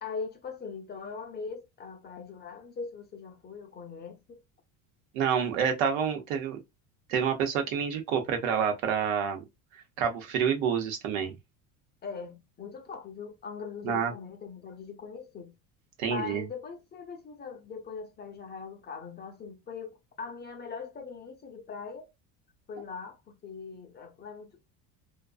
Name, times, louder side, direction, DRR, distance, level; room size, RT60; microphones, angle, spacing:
voice 1, 0.0-4.4 12.0-15.5 16.0-22.1 22.7-24.6, left 5 dB, 25° left, 0.4 m, -41 dB
voice 2, 5.1-6.6 7.1-9.4 10.0-11.3 13.8-14.1 16.0-16.4, right 7 dB, 80° right, 0.8 m, -28 dB
2.4 x 2.2 x 2.4 m
supercardioid pair, 115°, 42 cm